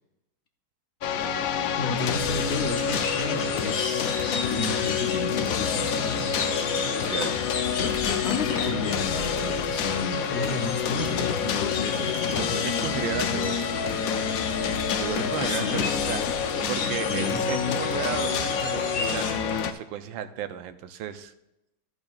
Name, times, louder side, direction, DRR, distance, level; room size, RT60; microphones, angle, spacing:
sound 1, 1.0-19.7, left 7 dB, 85° left, 0.7 m, -28 dB
voice 1, 1.8-6.9 7.8-13.6 15.4-15.9 16.3-16.4 16.8-17.4, left 3 dB, 50° left, 3 dB, 0.8 m, -33 dB
sound 2, 2.0-19.3, left 5 dB, 70° left, 1.8 m, -35 dB
voice 2, 6.7-7.5 12.4-13.8 15.0-16.2 16.7-21.3, right 10 dB, 80° right, 10 dB, 1.3 m, -34 dB
11.0 x 8.7 x 2.4 m, 0.88 s
omnidirectional pair, 2.2 m